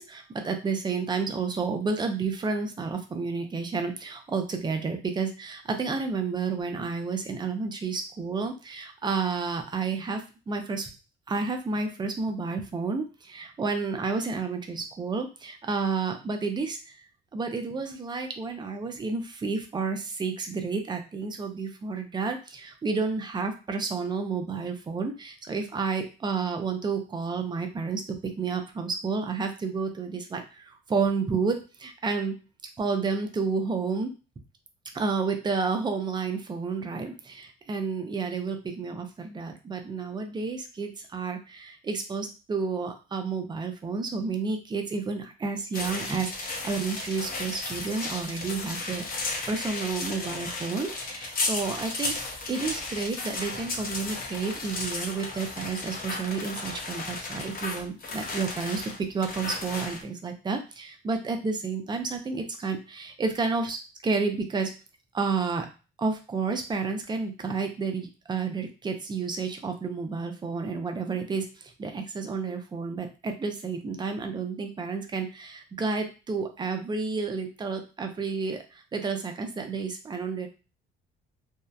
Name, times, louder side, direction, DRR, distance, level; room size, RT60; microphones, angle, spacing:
voice 1, 0.0-10.9 11.3-17.0 17.3-32.4 32.8-34.1 34.9-49.0 49.3-64.7 65.1-65.7 66.0-80.5, right 4 dB, 20° right, 4 dB, 0.4 m, -31 dB
sound 1, 45.7-60.0, left 3 dB, 45° left, 0.6 m, -34 dB
2.7 x 2.0 x 2.3 m, 0.32 s
cardioid pair, 115°, 21 cm